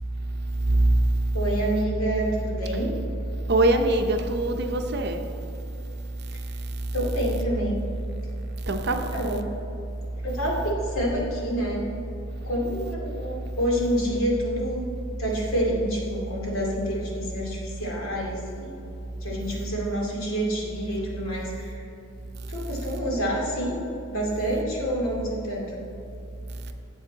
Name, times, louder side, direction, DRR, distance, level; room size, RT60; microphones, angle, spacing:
voice 1, 1.3-2.9 6.9-7.8 8.8-9.4 10.2-11.8 12.4-14.9 15.2-18.8 19.2-21.9 22.5-25.7, equal, 75° left, -3 dB, 2.4 m, -28 dB
voice 2, 3.5-5.2 8.7-9.1, right 2 dB, 50° right, 5 dB, 0.7 m, -22 dB
12.5 x 7.6 x 4.0 m, 2.7 s
head